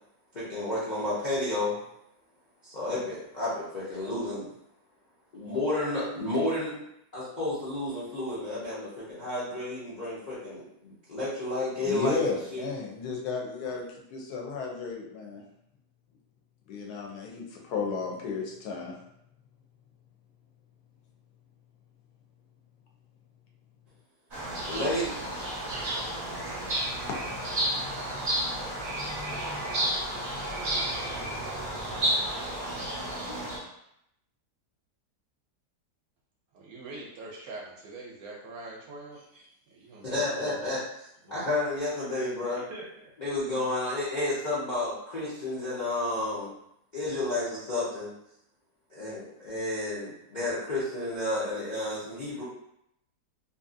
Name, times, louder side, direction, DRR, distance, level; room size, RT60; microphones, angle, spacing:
voice 1, 0.3-1.7 2.6-4.5 5.3-6.7 7.1-12.2 12.5-12.6 24.7-25.5 40.0-42.6 43.2-46.5 46.9-48.1 48.9-52.4, left 2 dB, 50° left, -10 dB, 0.5 m, -31 dB
voice 2, 11.8-15.4 16.7-18.9, left 5 dB, 75° left, 0 dB, 1.1 m, -33 dB
sound 1, 24.3-33.6, right 1 dB, 45° right, 0.7 m, -31 dB
voice 3, 36.5-39.2 39.7-40.6 41.2-41.5 42.5-42.8, right 2 dB, 70° right, -2 dB, 0.9 m, -43 dB
2.7 x 2.6 x 2.5 m, 0.78 s
omnidirectional pair, 1.8 m